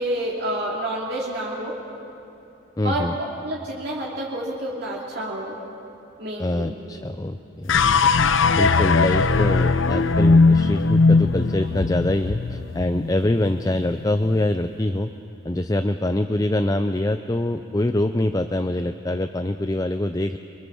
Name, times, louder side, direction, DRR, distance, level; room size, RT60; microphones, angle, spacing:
voice 1, 0.0-1.7 2.8-3.1 3.4-5.6 6.2-6.7, right 1 dB, 55° right, -3 dB, 2.9 m, -28 dB
voice 2, 2.8-3.2 6.4-8.1 8.5-15.1 15.4-20.4, left 1 dB, 20° left, 8 dB, 0.5 m, -24 dB
sound 1, 7.7-14.1, left 4 dB, 75° left, 0.8 m, -19 dB
28.5 x 22.5 x 7.1 m, 2.8 s
head